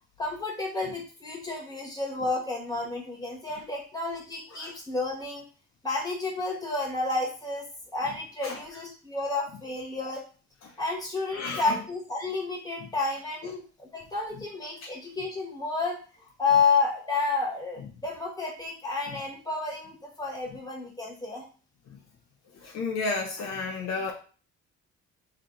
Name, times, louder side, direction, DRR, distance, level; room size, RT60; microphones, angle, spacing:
voice 1, 0.2-5.4 5.8-7.7 7.9-10.2 10.8-16.0 16.4-21.4, left 3 dB, 10° left, -2 dB, 1.6 m, -30 dB
voice 2, 11.3-11.8 22.5-24.1, left 3 dB, 60° left, 1 dB, 0.7 m, -32 dB
3.3 x 2.8 x 3.7 m, 0.38 s
cardioid pair, 90°, 30 cm